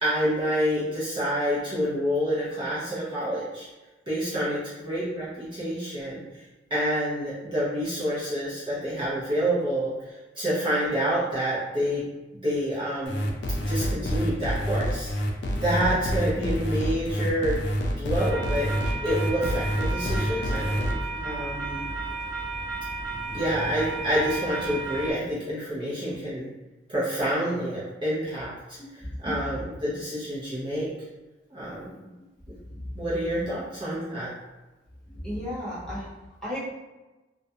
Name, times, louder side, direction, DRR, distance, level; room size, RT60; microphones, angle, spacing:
voice 1, 0.0-3.7 4.1-6.4 6.7-12.0 12.4-13.3 13.7-15.1 15.6-17.6 18.0-20.9 21.2-21.9 23.3-26.5 26.9-30.9 31.5-32.1 32.9-34.3, equal, 25° right, -10 dB, 0.6 m, -28 dB
sound 1, 13.1-20.9, equal, 65° left, 0.4 m, -27 dB
voice 2, 15.4-15.7 29.0-29.4 35.1-36.1 36.4-36.6, equal, 5° left, -10 dB, 0.9 m, -34 dB
sound 2, 18.2-25.1, right 3 dB, 85° right, 0.6 m, -33 dB
2.4 x 2.1 x 2.6 m, 1.1 s
head